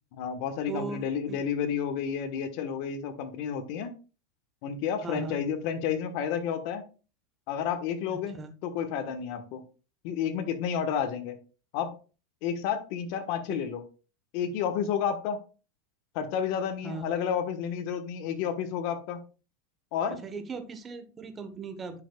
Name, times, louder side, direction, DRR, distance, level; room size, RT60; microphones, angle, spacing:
voice 1, 0.2-3.9 4.6-6.8 7.5-9.6 10.0-11.4 11.7-12.0 12.4-13.8 14.3-15.4 16.1-19.2 19.9-20.2, left 8 dB, 55° left, 9 dB, 1.1 m, -31 dB
voice 2, 0.7-1.4 5.0-5.4 8.1-8.5 16.8-17.1 20.2-22.0, right 4 dB, 20° right, 8 dB, 0.9 m, -38 dB
9.6 x 5.4 x 2.3 m, 0.35 s
supercardioid pair, 140°, 0 cm